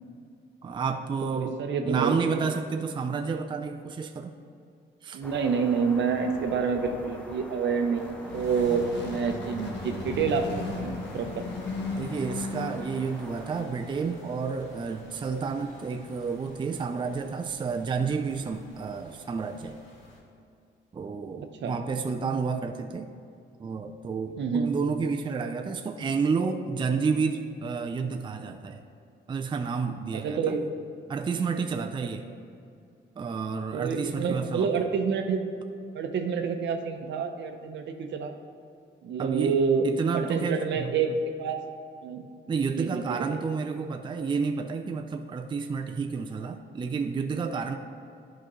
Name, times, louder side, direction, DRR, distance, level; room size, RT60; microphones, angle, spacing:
voice 1, 0.6-4.3 5.0-5.2 8.6-8.7 12.0-19.8 20.9-23.1 23.6-28.8 29.3-30.6 31.1-32.2 33.2-34.7 39.2-39.6 39.8-40.9 42.5-47.8, right 5 dB, 25° right, 5 dB, 0.4 m, -30 dB
voice 2, 1.2-2.4 5.1-11.4 21.6-21.8 24.4-24.7 30.1-30.7 33.7-35.4 35.9-38.3 39.0-39.9 40.1-41.6 42.0-42.3 42.8-43.4, right 5 dB, 65° right, 6 dB, 0.8 m, -28 dB
sound 1, 5.2-13.6, equal, 5° left, 0.8 m, -44 dB
sound 2, 7.8-13.1, left 3 dB, 65° left, 1.2 m, -36 dB
sound 3, 8.4-20.2, left 2 dB, 80° left, 1.5 m, -51 dB
11.0 x 5.0 x 3.1 m, 2.5 s
cardioid pair, 90°, 20 cm